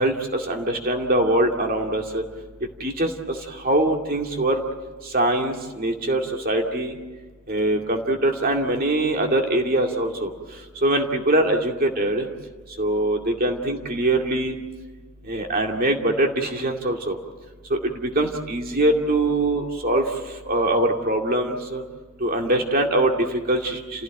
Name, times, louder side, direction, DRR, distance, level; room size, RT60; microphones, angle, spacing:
voice 1, 0.0-2.2 2.6-4.6 5.0-6.9 7.5-12.3 12.7-14.6 15.2-17.2 17.7-21.8 22.2-24.0, right 1 dB, 40° right, 2 dB, 2.4 m, -23 dB
29.5 x 16.0 x 9.1 m, 1.4 s
head